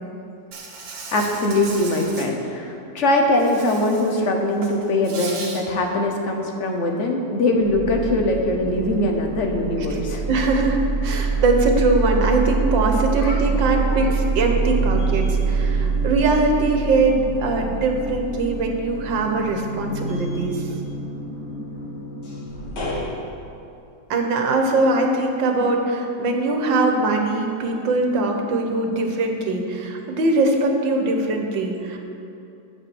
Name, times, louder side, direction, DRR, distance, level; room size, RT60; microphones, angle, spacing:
Insect, 0.5-2.3 3.4-4.2 4.5-5.6, right 4 dB, 65° right, 1.8 m, -36 dB
voice 1, 1.1-10.2 13.2-14.1, left 1 dB, 45° left, 2 dB, 1.2 m, -22 dB
sound 1, 6.5-6.8 7.2-23.1, right 4 dB, 65° left, 2.4 m, -26 dB
voice 2, 10.3-20.7 24.1-32.0, right 2 dB, 80° right, 3 dB, 1.8 m, -21 dB
8.6 x 7.2 x 7.0 m, 2.7 s
omnidirectional pair, 2.0 m